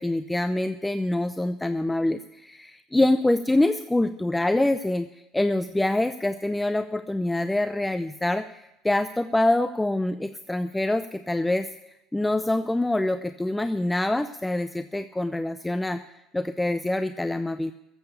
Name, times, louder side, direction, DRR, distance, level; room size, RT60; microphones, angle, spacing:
voice 1, 0.0-11.7 12.1-16.0 16.3-17.7, left 1 dB, 10° left, 10 dB, 0.6 m, -25 dB
14.0 x 8.0 x 8.5 m, 0.91 s
hypercardioid pair, 65°, 0 cm